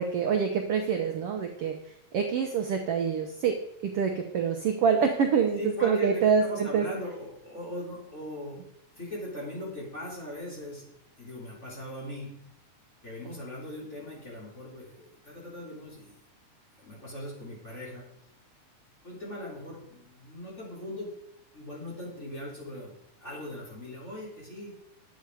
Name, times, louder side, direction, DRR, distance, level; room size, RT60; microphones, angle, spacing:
voice 1, 0.0-1.7 2.1-3.6 3.8-6.9, right 6 dB, 75° right, 4 dB, 1.4 m, -26 dB
voice 2, 5.6-8.6 9.0-10.9 11.2-12.3 13.0-16.2 16.8-18.0 19.0-21.1 21.5-22.9 23.2-24.7, left 1 dB, 20° left, -5 dB, 4.1 m, -39 dB
11.0 x 8.1 x 4.9 m, 0.77 s
omnidirectional pair, 3.8 m